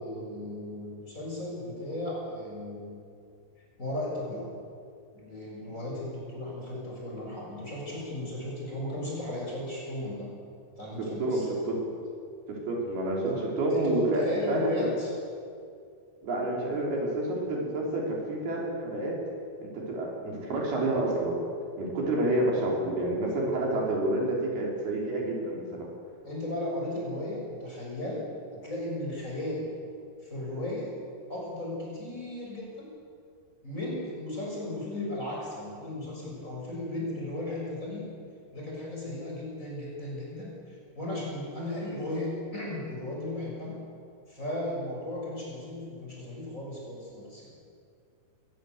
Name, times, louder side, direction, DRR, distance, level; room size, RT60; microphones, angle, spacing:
voice 1, 0.0-3.0 3.8-4.5 5.1-10.4 10.7-11.5 13.3-13.4 13.7-15.1 26.2-29.7 30.2-31.0 31.3-32.9 33.6-38.1 38.5-43.8 44.3-47.5, left 1 dB, 15° left, -4 dB, 6.8 m, -35 dB
voice 2, 11.0-11.9 12.5-14.7 16.2-19.2 19.6-21.4 21.8-25.9, right 1 dB, 65° right, -2 dB, 5.8 m, -29 dB
22.0 x 20.0 x 8.1 m, 2.3 s
omnidirectional pair, 4.9 m